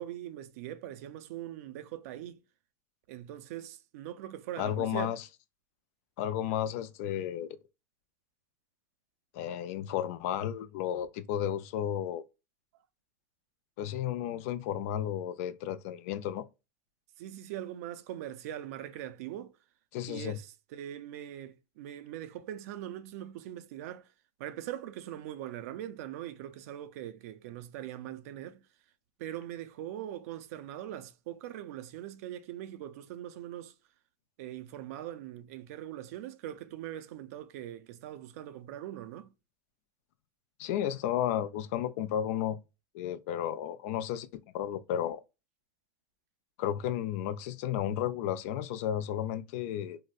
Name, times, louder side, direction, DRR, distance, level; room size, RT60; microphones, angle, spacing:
voice 1, 0.0-2.4 3.1-5.1 17.2-19.5 20.1-24.0 24.4-28.6 29.2-33.7 34.4-39.3, right 12 dB, 70° right, 0.4 m, -41 dB
voice 2, 4.6-5.2 6.2-7.5 9.3-12.2 13.8-16.5 19.9-20.4 40.6-42.6 42.9-44.3 44.5-45.2 46.6-50.0, left 10 dB, 65° left, 0.4 m, -33 dB
3.6 x 2.1 x 2.4 m
supercardioid pair, 120°, 8 cm